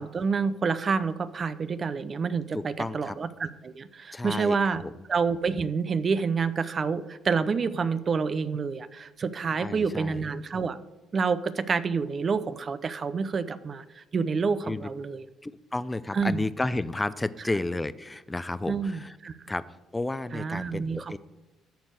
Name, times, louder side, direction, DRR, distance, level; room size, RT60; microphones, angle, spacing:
voice 1, 0.0-4.8 5.1-10.8 11.1-15.2 16.1-16.4 18.7-19.3 20.3-21.2, right 5 dB, 40° right, 14 dB, 0.7 m, -28 dB
voice 2, 2.5-3.2 4.1-4.9 9.6-10.2 14.7-14.9 15.4-19.2 19.5-19.6 19.9-21.2, left 2 dB, 15° left, 15 dB, 0.6 m, -32 dB
13.5 x 4.5 x 8.0 m, 1.1 s
cardioid pair, 90°, 0 cm